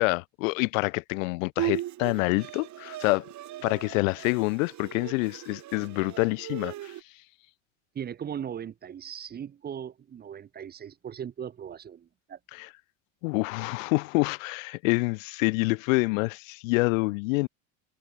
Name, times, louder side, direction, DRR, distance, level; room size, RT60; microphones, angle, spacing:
voice 1, 0.0-3.2 3.6-6.9 12.5-12.7 13.2-17.5, left 26 dB, 85° left, 0.6 m, -27 dB
Bowed string instrument, 1.6-7.0, right 14 dB, 45° right, 2.4 m, -37 dB
voice 2, 7.9-12.4, right 8 dB, 25° right, 0.7 m, -38 dB
supercardioid pair, 110°, 39 cm